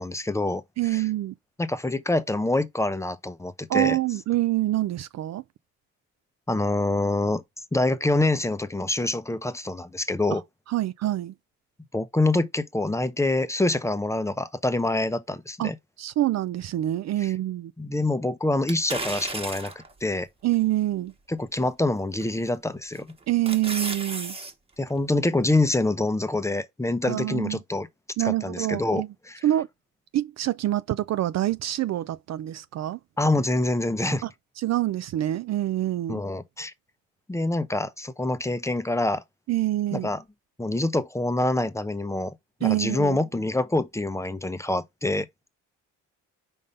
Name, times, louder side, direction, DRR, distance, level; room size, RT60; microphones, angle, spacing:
voice 1, 0.0-1.1 1.6-4.0 6.5-7.4 7.7-10.4 11.9-15.8 17.2-17.3 17.8-19.7 20.0-20.3 21.3-23.1 24.8-27.9 28.2-29.4 33.2-34.2 36.1-36.7 37.3-39.2 39.9-40.2 40.6-42.3 42.6-45.3, left 2 dB, 10° left, 0.6 m, -26 dB
voice 2, 0.8-1.3 3.7-5.4 10.7-11.3 15.6-15.7 16.0-17.7 20.4-21.1 23.3-24.4 27.0-27.6 28.2-29.1 29.4-29.7 30.1-33.0 34.2-34.3 34.6-36.2 39.5-40.1 42.6-43.2, right 14 dB, 50° right, 0.4 m, -26 dB
sound 1, 18.7-19.9 20.5-20.6 22.2-22.5 23.0-24.5 24.9-25.0, right 3 dB, 15° right, 1.3 m, -33 dB
5.4 x 3.6 x 5.3 m
cardioid pair, 95°, 34 cm